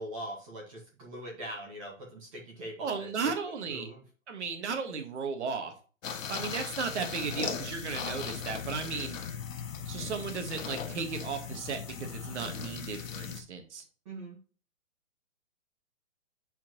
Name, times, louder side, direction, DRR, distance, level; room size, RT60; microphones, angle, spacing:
voice 1, 0.0-3.3 3.7-4.0 14.0-14.4, right 1 dB, 25° right, -2 dB, 1.3 m, -42 dB
voice 2, 2.8-3.9 4.3-5.7 6.3-9.2 9.8-13.8, right 5 dB, 60° right, 6 dB, 1.5 m, -35 dB
sound 1, 6.0-13.4, left 7 dB, 75° left, 1.2 m, -38 dB
8.7 x 4.4 x 3.0 m, 0.38 s
hypercardioid pair, 165°, 40 cm